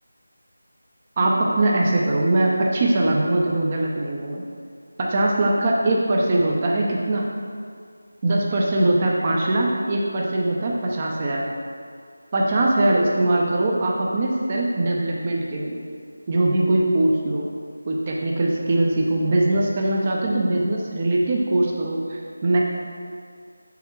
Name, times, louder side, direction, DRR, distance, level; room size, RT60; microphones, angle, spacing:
voice 1, 1.2-4.4 5.0-7.2 8.2-11.5 12.3-15.8 16.3-17.5 17.9-22.6, right 1 dB, 30° right, -2 dB, 0.7 m, -21 dB
7.0 x 4.4 x 4.6 m, 2.1 s
figure-of-eight pair, 170°, 0 cm